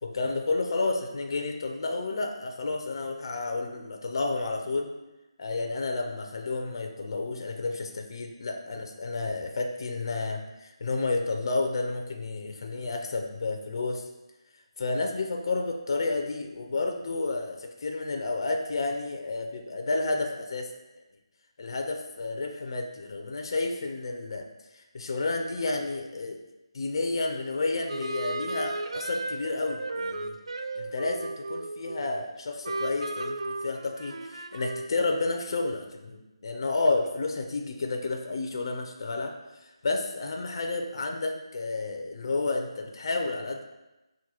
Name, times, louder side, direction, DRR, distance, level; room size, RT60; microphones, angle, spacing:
voice 1, 0.0-4.9 5.4-14.0 14.8-20.7 21.6-24.4 24.7-26.4 26.7-30.4 30.8-39.3 39.8-43.6, left 3 dB, 50° left, 3 dB, 0.4 m, -31 dB
sound 1, 27.9-32.3 32.6-35.0, right 2 dB, 80° right, 0.3 m, -35 dB
6.0 x 2.2 x 2.8 m, 1.0 s
figure-of-eight pair, 160°, 3 cm